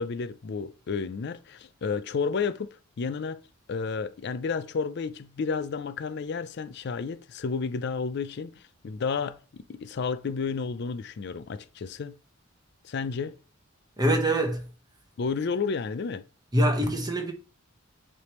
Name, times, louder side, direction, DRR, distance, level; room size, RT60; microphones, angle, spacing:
voice 1, 0.0-2.7 3.0-3.4 3.7-12.2 12.8-13.4 15.2-16.2, left 5 dB, 55° left, 0.4 m, -31 dB
voice 2, 14.0-14.7 16.5-17.3, right 1 dB, 20° right, 1.1 m, -24 dB
9.5 x 3.4 x 3.1 m
head